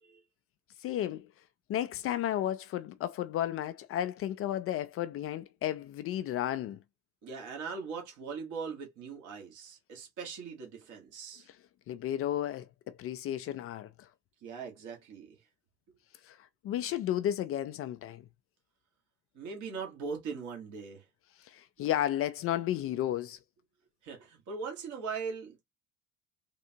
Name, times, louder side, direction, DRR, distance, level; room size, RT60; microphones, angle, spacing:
voice 1, 0.8-1.3 1.7-6.8 11.5-11.6 11.9-14.1 16.2-18.2 21.4-23.4, left 11 dB, 40° left, 0.4 m, -33 dB
voice 2, 7.2-11.5 14.4-15.4 19.3-21.0 24.0-25.6, right 5 dB, 60° right, 1.5 m, -40 dB
3.6 x 2.4 x 2.8 m
hypercardioid pair, 65°, 35 cm